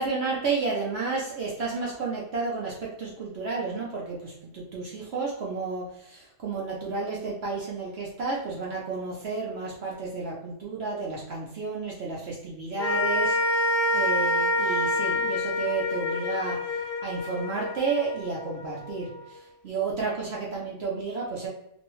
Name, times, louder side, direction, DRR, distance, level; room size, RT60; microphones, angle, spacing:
voice 1, 0.0-21.5, right 4 dB, 60° right, -4 dB, 0.6 m, -32 dB
sound 1, 12.8-19.2, left 2 dB, 55° left, 0.4 m, -27 dB
2.9 x 2.6 x 2.9 m, 0.79 s
omnidirectional pair, 1.7 m